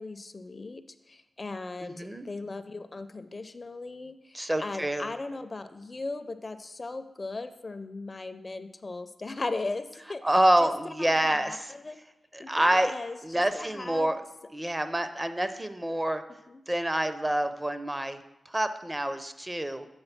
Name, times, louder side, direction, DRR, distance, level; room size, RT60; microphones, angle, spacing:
voice 1, 0.0-10.2 10.6-10.7 11.0-12.0 12.4-14.2 16.5-16.6, left 3 dB, 40° left, 10 dB, 0.5 m, -38 dB
voice 2, 1.8-2.3 4.3-5.1 10.2-11.7 12.3-12.9 13.2-14.2 14.5-16.2 16.7-18.2 18.5-19.9, right 1 dB, 20° right, 10 dB, 0.5 m, -27 dB
7.9 x 3.8 x 5.8 m, 0.93 s
cardioid pair, 65°, 0 cm